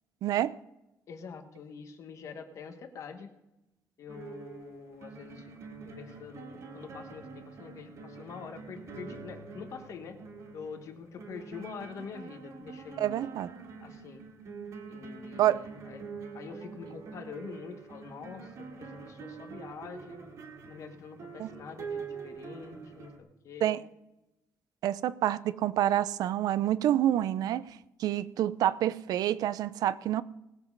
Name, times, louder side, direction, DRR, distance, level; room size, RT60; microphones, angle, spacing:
voice 1, 0.2-0.5 13.0-13.5 15.4-15.6 21.4-21.5 23.6-23.8 24.8-27.6 28.0-30.2, right 12 dB, 75° right, 0.5 m, -27 dB
voice 2, 1.1-3.3 4.0-5.5 5.8-10.2 10.5-13.3 13.8-14.2 14.9-16.0 16.3-20.2 20.7-23.8, left 6 dB, 55° left, 1.4 m, -45 dB
sound 1, 4.1-23.2, right 5 dB, 50° right, 2.0 m, -45 dB
19.0 x 7.3 x 5.4 m
cardioid pair, 175°, 6 cm